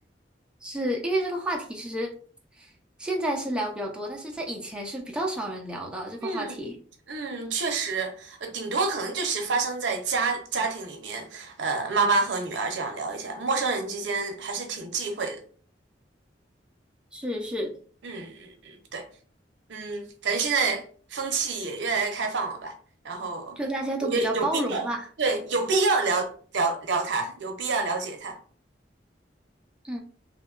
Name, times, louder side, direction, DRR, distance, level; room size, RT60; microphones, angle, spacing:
voice 1, 0.6-2.1 2.6-2.7 3.0-6.7 17.1-17.7 23.6-25.1 29.8-30.0, right 1 dB, 5° right, 0.4 m, -30 dB
voice 2, 6.2-6.6 7.1-15.4 18.0-19.0 19.7-20.8 21.1-22.7 23.0-23.6 24.0-24.9 25.2-28.4, right 4 dB, 80° right, 0.6 m, -28 dB
2.8 x 2.2 x 2.3 m
head